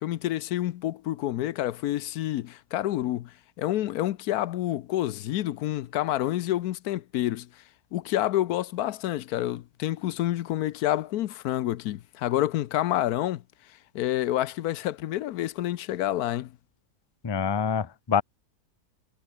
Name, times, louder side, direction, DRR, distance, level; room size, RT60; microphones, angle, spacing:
voice 1, 0.0-7.5 7.9-13.4 13.9-16.5, left 13 dB, 80° left, 1.1 m, -28 dB
voice 2, 17.2-18.2, left 7 dB, 30° left, 0.4 m, -26 dB
omnidirectional pair, 1.6 m